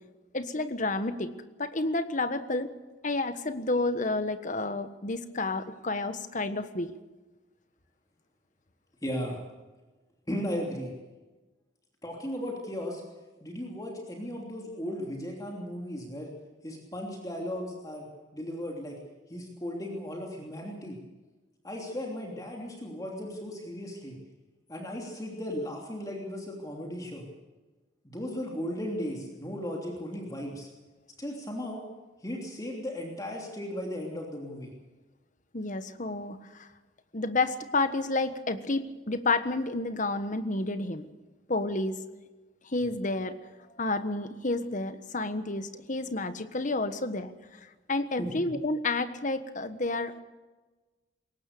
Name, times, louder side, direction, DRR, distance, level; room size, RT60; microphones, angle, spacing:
voice 1, 0.3-1.3 1.6-2.7 3.0-6.9 35.5-36.7 37.1-41.1 41.5-41.9 42.7-43.4 43.8-47.3 47.9-50.2, left 2 dB, 40° left, 10 dB, 1.4 m, -30 dB
voice 2, 9.0-9.4 10.3-10.9 12.0-13.0 13.4-16.3 16.6-18.1 18.3-19.0 19.3-21.0 21.6-24.2 24.7-27.3 28.0-30.7 31.2-31.8 32.2-34.7 48.2-48.5, equal, 20° left, 0 dB, 3.1 m, -36 dB
22.0 x 18.5 x 6.8 m, 1.2 s
head